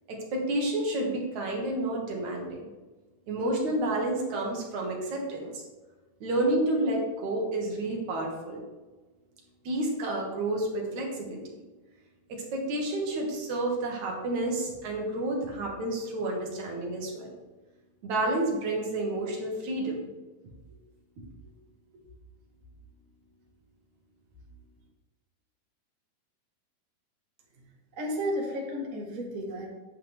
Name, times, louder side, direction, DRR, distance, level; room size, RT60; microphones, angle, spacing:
voice 1, 0.1-2.6 3.3-5.6 6.2-8.6 9.6-11.6 12.3-17.3 18.0-20.0, right 1 dB, 60° right, 0 dB, 2.8 m, -30 dB
voice 2, 28.0-29.7, equal, 35° right, -2 dB, 1.3 m, -32 dB
9.7 x 8.6 x 3.6 m, 1.2 s
omnidirectional pair, 4.1 m